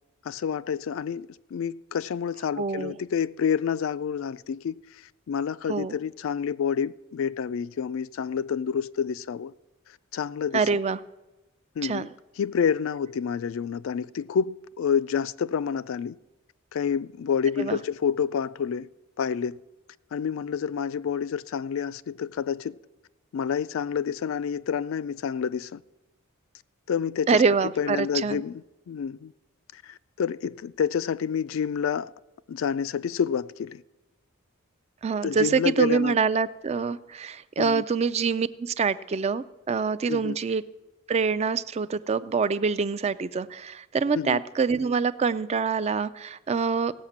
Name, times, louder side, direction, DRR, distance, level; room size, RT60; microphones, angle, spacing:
voice 1, 0.3-4.8 5.3-9.5 10.1-10.6 11.8-12.1 12.4-16.2 16.7-18.9 19.2-19.6 20.1-22.8 23.3-25.8 26.9-27.4 27.8-28.6 28.9-29.3 29.7-32.1 32.5-33.8 35.2-36.2 37.6-37.8 40.1-40.4 44.1-44.4, left 7 dB, 60° left, 0.3 m, -28 dB
voice 2, 2.6-3.0 5.7-5.9 10.5-11.0 11.8-12.1 17.6-17.8 27.3-28.4 35.0-40.6 41.1-46.9, right 5 dB, 30° right, 0.3 m, -25 dB
17.0 x 5.8 x 7.2 m
head